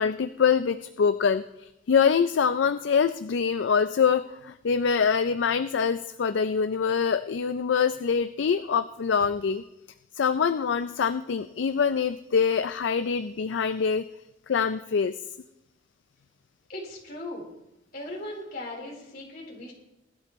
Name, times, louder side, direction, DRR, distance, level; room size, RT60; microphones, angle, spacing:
voice 1, 0.0-9.6 10.2-14.0 14.5-15.1, left 6 dB, 70° left, 11 dB, 0.4 m, -24 dB
voice 2, 16.7-17.5 17.9-19.7, left 1 dB, 50° left, -3 dB, 4.1 m, -38 dB
20.5 x 12.0 x 3.1 m, 0.91 s
head